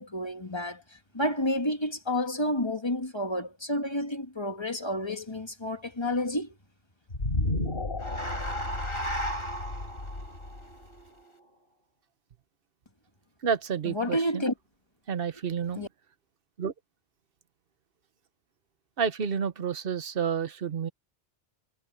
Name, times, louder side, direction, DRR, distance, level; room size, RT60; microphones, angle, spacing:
voice 1, 0.0-6.5 13.9-14.5 15.8-15.9, left 1 dB, 25° left, 2.1 m, -30 dB
sound 1, 7.1-11.5, left 1 dB, 55° left, 3.8 m, -32 dB
voice 2, 13.4-14.4 15.1-15.8 16.6-16.7 19.0-20.9, right 7 dB, 55° right, 1.1 m, -30 dB
omnidirectional pair, 1.2 m